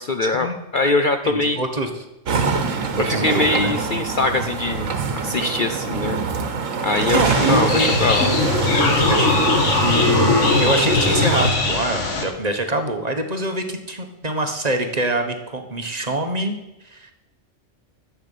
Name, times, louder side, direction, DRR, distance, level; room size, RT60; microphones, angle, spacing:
voice 1, 0.0-1.6 3.0-4.9 5.2-6.2 6.8-8.3, left 3 dB, 50° left, 7 dB, 0.7 m, -22 dB
voice 2, 1.2-1.9 2.3-2.5 3.0-3.7 7.1-7.9 8.9-16.6 16.8-17.1, right 1 dB, 30° right, 6 dB, 1.3 m, -24 dB
sound 1, 2.2-11.5, right 5 dB, 80° right, 1.6 m, -24 dB
sound 2, 7.2-12.2, left 3 dB, 65° left, 2.0 m, -20 dB
11.5 x 7.1 x 8.4 m, 0.92 s
omnidirectional pair, 1.3 m